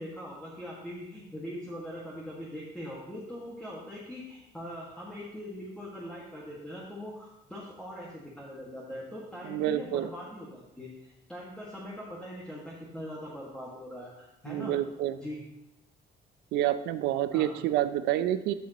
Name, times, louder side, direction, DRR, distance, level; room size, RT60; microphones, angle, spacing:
voice 1, 0.0-14.7 15.2-15.4 17.3-17.5, equal, 5° left, -5 dB, 1.9 m, -41 dB
voice 2, 9.4-10.1 14.5-15.2 16.5-18.5, right 12 dB, 85° right, 12 dB, 0.6 m, -28 dB
13.0 x 5.6 x 3.0 m, 0.89 s
cardioid pair, 110°, 17 cm